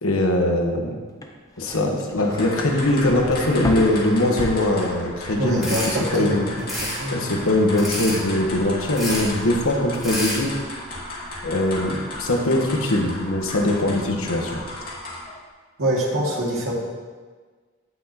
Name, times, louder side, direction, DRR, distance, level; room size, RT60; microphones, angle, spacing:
voice 1, 0.0-1.0 1.6-6.4 7.1-10.5 11.4-14.6, left 1 dB, 90° left, 2 dB, 1.3 m, -21 dB
sound 1, 1.1-5.4 5.7-6.2, left 1 dB, 15° left, 0.7 m, -33 dB
sound 2, 2.2-15.4, left 1 dB, 45° left, 2.3 m, -35 dB
voice 2, 5.4-7.4 15.8-16.7, right 1 dB, 85° right, -4 dB, 2.3 m, -25 dB
sound 3, 5.6-5.9 6.6-7.0 7.8-8.2 8.9-9.3 9.9-10.4, equal, ahead, 2.7 m, -28 dB
16.5 x 6.0 x 2.9 m, 1.5 s
head